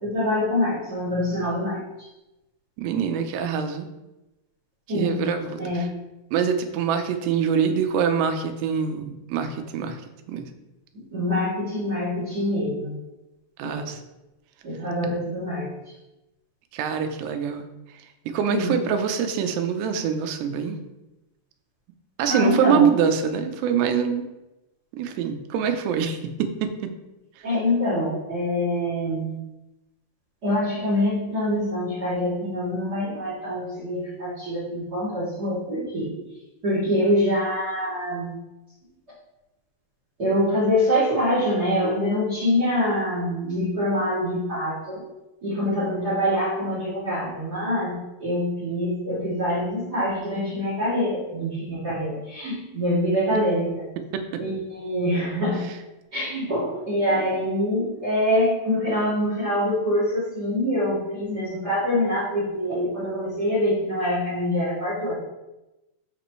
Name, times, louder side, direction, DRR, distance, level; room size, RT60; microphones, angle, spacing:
voice 1, 0.0-1.8 4.9-5.1 5.6-5.8 11.1-12.9 13.6-13.8 14.6-15.7 18.5-18.7 22.3-22.8 27.4-29.3 30.4-36.1 36.6-38.3 40.2-45.0 45.4-47.9 48.2-53.7 54.4-55.6 56.1-65.1, left 1 dB, 30° right, -7 dB, 2.4 m, -25 dB
voice 2, 2.8-3.9 4.9-5.9 6.3-10.0 10.3-10.5 13.6-14.0 16.7-17.7 18.3-20.8 22.2-24.3 24.9-26.7 27.4-27.5 54.3-54.4 55.5-55.8, right 7 dB, 85° right, 7 dB, 2.9 m, -24 dB
12.5 x 5.2 x 3.1 m, 1.0 s
omnidirectional pair, 4.8 m